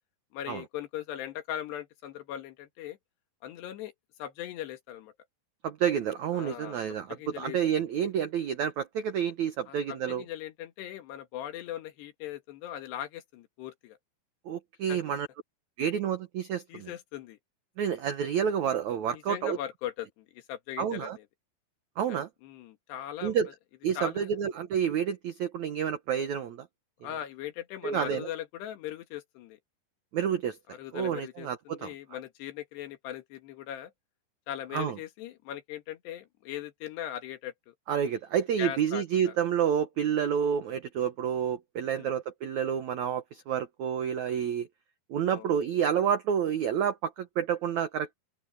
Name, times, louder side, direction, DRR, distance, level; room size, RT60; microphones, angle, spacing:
voice 1, 0.3-3.0 3.4-3.9 4.2-5.1 6.3-7.6 9.7-14.0 14.9-15.0 16.7-17.4 19.1-21.3 22.1-23.3 24.0-24.4 27.0-29.6 30.7-33.9 34.5-37.7 38.6-39.3 40.0-40.2 41.9-42.1 45.3-45.5, left 11 dB, 75° left, 3.7 m, -39 dB
voice 2, 5.6-10.2 14.5-15.3 15.8-16.9 17.8-19.6 20.8-21.2 22.0-22.3 23.2-23.5 23.8-26.6 27.8-28.3 30.1-30.6 30.9-31.9 34.7-35.0 37.9-44.7 45.1-48.1, right 8 dB, 75° right, 1.6 m, -29 dB
open air
omnidirectional pair, 4.9 m